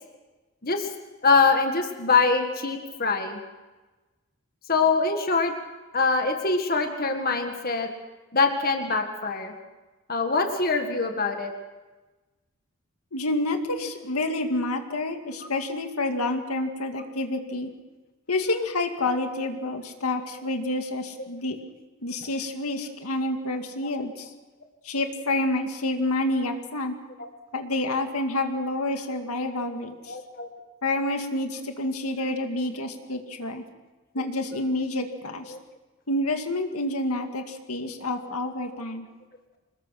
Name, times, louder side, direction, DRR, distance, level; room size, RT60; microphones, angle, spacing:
voice 1, 1.2-3.4 4.7-5.5 5.9-7.9 8.3-9.5 10.1-11.5 23.9-24.0 30.1-30.5 35.5-35.6, left 4 dB, 40° left, 5 dB, 1.7 m, -24 dB
voice 2, 13.1-17.7 18.3-21.6 22.0-24.3 24.8-26.9 27.5-30.2 30.8-33.6 34.1-35.5 36.1-39.1, left 2 dB, 85° left, 5 dB, 2.1 m, -28 dB
25.5 x 20.5 x 5.9 m, 1.2 s
head